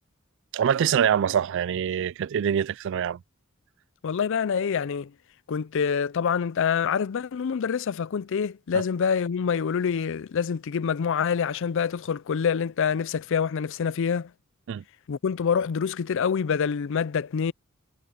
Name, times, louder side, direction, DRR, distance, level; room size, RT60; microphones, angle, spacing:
voice 1, 0.5-3.2 8.7-8.8 14.7-14.8, right 8 dB, 60° right, 0.3 m, -24 dB
voice 2, 4.0-5.1 5.5-14.3 15.1-17.5, left 6 dB, 65° left, 0.4 m, -26 dB
head